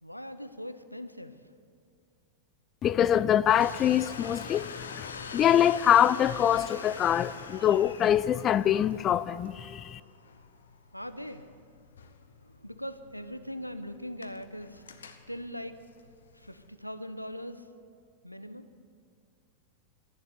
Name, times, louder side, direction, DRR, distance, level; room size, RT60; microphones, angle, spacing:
voice 1, 0.0-1.4 10.9-11.5 12.4-14.8 15.3-15.8 16.4-17.6 18.2-18.7, equal, 90° left, 0.7 m, -40 dB
voice 2, 2.8-5.1 5.3-10.0, left 10 dB, 30° left, 0.3 m, -24 dB
Domestic sounds home sounds, 3.6-16.7, left 5 dB, 70° left, 1.0 m, -45 dB
12.0 x 11.0 x 9.7 m
figure-of-eight pair, 90°, 0 cm